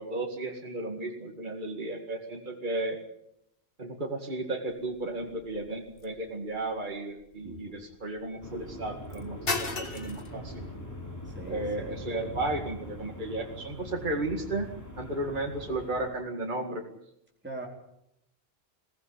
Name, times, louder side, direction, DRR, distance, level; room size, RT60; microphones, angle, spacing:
voice 1, 0.0-3.0 3.8-10.7 11.5-14.7 15.0-16.8, right 2 dB, 45° right, 1 dB, 2.3 m, -34 dB
sound 1, 4.7-14.8, left 4 dB, 60° left, 2.0 m, -41 dB
voice 2, 7.4-7.7 11.2-11.9 17.4-17.7, right 2 dB, 10° right, -1 dB, 4.0 m, -41 dB
sound 2, 8.4-16.1, equal, 15° left, 3.9 m, -42 dB
22.0 x 16.5 x 9.8 m, 0.80 s
omnidirectional pair, 1.1 m